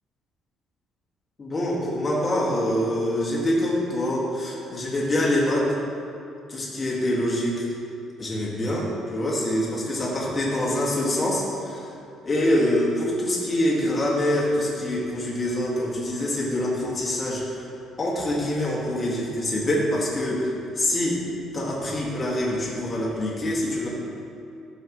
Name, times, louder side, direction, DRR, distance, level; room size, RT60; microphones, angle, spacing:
voice 1, 1.4-5.7 6.5-7.7 8.2-11.9 12.2-17.7 18.0-21.2 21.5-23.9, left 1 dB, 25° left, -5 dB, 2.0 m, -25 dB
14.5 x 7.0 x 3.1 m, 2.6 s
cardioid pair, 165°, 0 cm